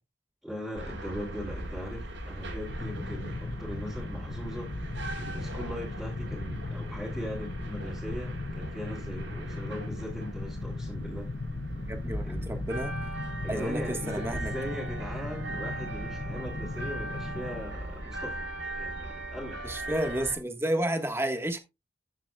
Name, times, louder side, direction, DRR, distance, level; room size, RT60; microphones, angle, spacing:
voice 1, 0.4-4.7 5.1-11.3 12.2-12.5 13.4-18.5 18.8-19.6, equal, ahead, 2.8 m, -39 dB
sound 1, 0.7-20.3, right 1 dB, 85° right, 5.2 m, -39 dB
sound 2, 1.6-18.0, right 1 dB, 85° left, 1.3 m, -46 dB
sound 3, 2.7-17.6, left 3 dB, 45° left, 0.5 m, -38 dB
voice 2, 11.8-12.9 13.5-14.5 19.6-21.6, right 1 dB, 15° right, 1.4 m, -31 dB
14.0 x 7.3 x 2.3 m
head